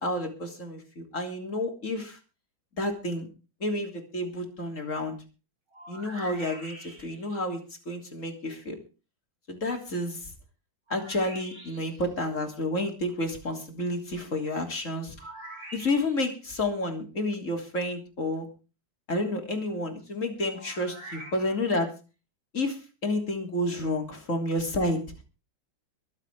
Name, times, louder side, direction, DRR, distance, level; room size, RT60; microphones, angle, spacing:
voice 1, 0.0-2.2 2.8-3.3 3.6-5.1 5.9-7.6 7.9-8.8 9.5-10.3 10.9-15.2 15.7-18.5 19.1-21.9 22.5-25.0, left 1 dB, 40° left, 3 dB, 3.7 m, -30 dB
sound 1, 5.7-7.4 10.9-12.1 15.2-16.4 20.5-21.9, right 1 dB, 35° right, 5.4 m, -45 dB
23.0 x 8.1 x 4.9 m, 0.34 s
omnidirectional pair, 2.1 m